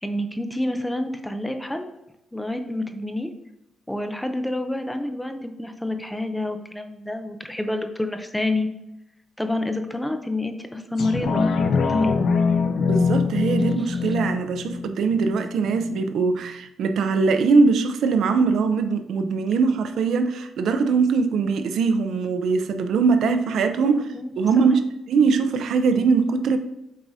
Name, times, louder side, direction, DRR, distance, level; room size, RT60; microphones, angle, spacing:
voice 1, 0.0-1.9 2.3-3.3 3.9-8.7 9.4-11.5 11.9-12.2 13.6-13.7 23.8-24.6, left 1 dB, 5° left, 0.6 m, -28 dB
sound 1, 11.0-16.0 16.5-16.6, left 4 dB, 60° left, 0.6 m, -23 dB
voice 2, 12.8-26.6, right 4 dB, 70° right, 0.5 m, -21 dB
7.4 x 4.7 x 2.7 m
cardioid pair, 125°, 0 cm